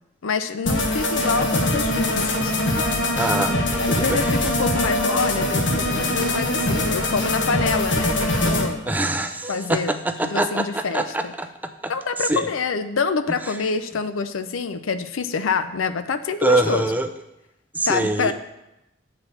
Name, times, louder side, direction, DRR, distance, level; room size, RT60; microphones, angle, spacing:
voice 1, 0.2-2.5 2.9-3.2 3.8-8.9 9.5-11.3 11.9-16.9 17.9-18.3, left 5 dB, 85° left, 11 dB, 0.5 m, -26 dB
sound 1, 0.6-8.7, left 1 dB, 60° left, 1.1 m, -22 dB
voice 2, 3.2-4.5 8.9-11.5 11.8-11.9 12.2-12.5 16.4-17.1 17.7-18.3, right 2 dB, 10° right, 7 dB, 0.3 m, -24 dB
7.8 x 4.1 x 6.8 m, 0.92 s
head